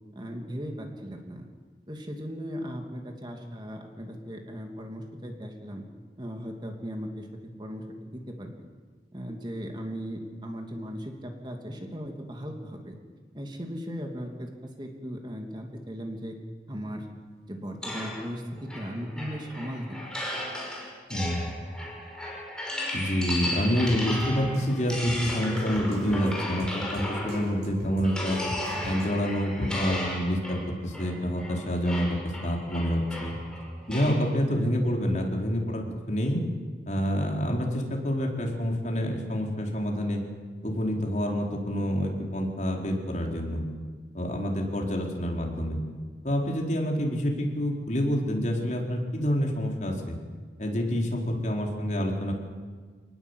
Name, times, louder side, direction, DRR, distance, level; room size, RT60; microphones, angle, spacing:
voice 1, 0.1-1.5 1.9-5.8 6.2-7.3 7.6-8.6 9.1-12.9 13.3-14.5 14.8-16.3 16.7-17.1 17.5-19.8 33.9-34.2, equal, 25° right, 3 dB, 2.8 m, -37 dB
sound 1, 17.8-27.6 28.0-34.3, left 1 dB, 5° left, 5.7 m, -35 dB
voice 2, 21.1-21.5 22.9-28.4 28.8-33.3 33.9-36.4 36.9-40.2 40.6-43.6 44.1-45.8 46.2-50.2 50.6-52.3, equal, 45° left, 0 dB, 4.5 m, -27 dB
Drum kit, 23.9-29.3, equal, 75° right, 5.5 m, -41 dB
27.0 x 20.0 x 8.3 m, 1.5 s
head